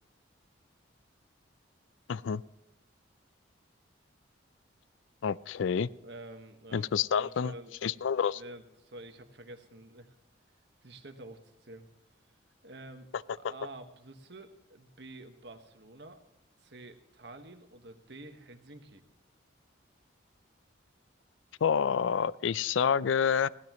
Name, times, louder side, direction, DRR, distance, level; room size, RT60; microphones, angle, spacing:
voice 1, 2.1-2.4 5.2-5.9 6.7-7.5 7.8-8.4 21.6-23.5, left 7 dB, 80° left, 20 dB, 0.4 m, -28 dB
voice 2, 6.0-6.9 7.1-10.1 10.8-11.9 12.6-13.1 13.3-16.2 16.6-19.0, right 2 dB, 60° right, 7 dB, 1.5 m, -49 dB
21.0 x 16.5 x 3.1 m, 0.90 s
head